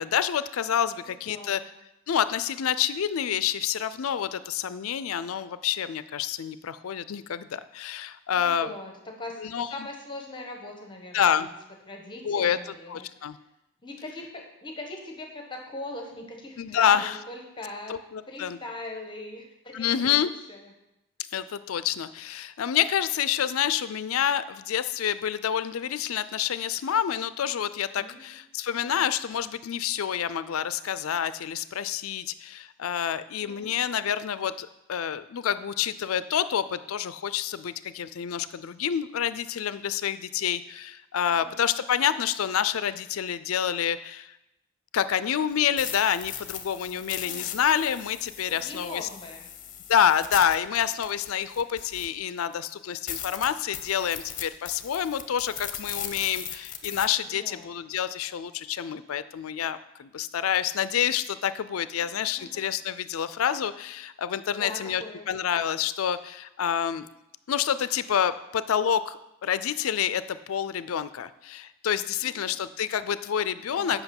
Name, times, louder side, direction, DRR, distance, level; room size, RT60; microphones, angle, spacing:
voice 1, 0.0-1.6 2.1-8.7 9.4-9.7 11.1-11.5 12.2-12.6 12.9-13.4 16.6-17.2 17.9-18.6 19.7-20.3 21.3-44.3 44.9-49.1 49.9-67.1 67.5-74.0, left 9 dB, 90° left, 14 dB, 0.4 m, -28 dB
voice 2, 1.0-1.7 8.3-11.5 11.9-13.3 13.8-18.0 18.3-20.7 27.9-28.3 33.4-33.7 41.3-41.8 47.3-47.6 48.5-49.5 57.3-57.7 62.0-62.1 62.4-62.6 64.5-65.3 72.2-72.6 73.7-74.0, left 2 dB, 25° left, 2 dB, 1.1 m, -41 dB
sound 1, 45.5-52.3 52.7-52.8 53.1-57.1, left 9 dB, 40° left, 0.8 m, -38 dB
8.1 x 5.7 x 7.0 m, 0.90 s
head